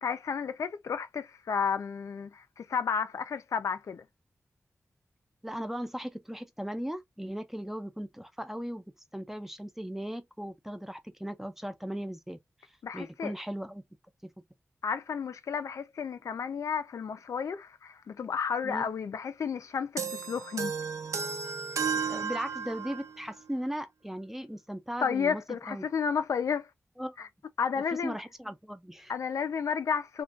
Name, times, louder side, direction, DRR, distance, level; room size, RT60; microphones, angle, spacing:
voice 1, 0.0-4.0 12.8-13.3 14.8-20.7 25.0-26.7 27.2-27.3 27.6-28.2 29.1-30.2, left 6 dB, 85° left, 0.4 m, -32 dB
voice 2, 5.4-12.4 12.9-13.8 14.2-14.4 18.6-18.9 22.1-25.4 25.7-25.9 27.0-27.3 28.0-29.1, equal, 5° right, 0.3 m, -37 dB
sound 1, 20.0-23.2, right 5 dB, 80° right, 0.4 m, -33 dB
2.4 x 2.2 x 2.3 m
wide cardioid pair, 140°, 5 cm